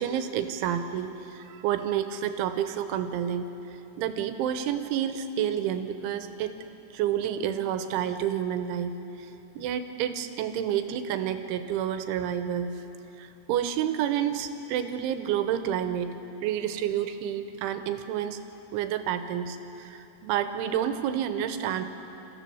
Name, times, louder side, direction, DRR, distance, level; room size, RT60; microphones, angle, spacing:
voice 1, 0.0-3.5 4.0-6.5 6.9-8.9 9.2-9.3 9.6-12.7 13.2-16.1 16.4-18.4 18.7-21.9, right 9 dB, 90° right, 9 dB, 3.4 m, -29 dB
30.0 x 14.5 x 7.0 m, 2.9 s
omnidirectional pair, 5.4 m